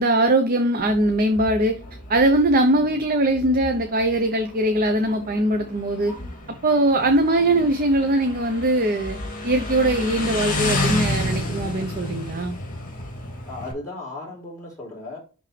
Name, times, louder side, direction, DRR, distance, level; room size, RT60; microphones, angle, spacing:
voice 1, 0.0-1.8 2.1-6.1 6.6-9.2 9.4-12.6, right 1 dB, 40° right, 0.8 m, -21 dB
Motorcycle, 0.8-13.7, left 1 dB, 40° left, 2.7 m, -31 dB
voice 2, 2.8-3.1 7.3-7.8 13.4-15.2, left 2 dB, 15° left, 4.1 m, -37 dB
10.5 x 3.7 x 3.3 m
head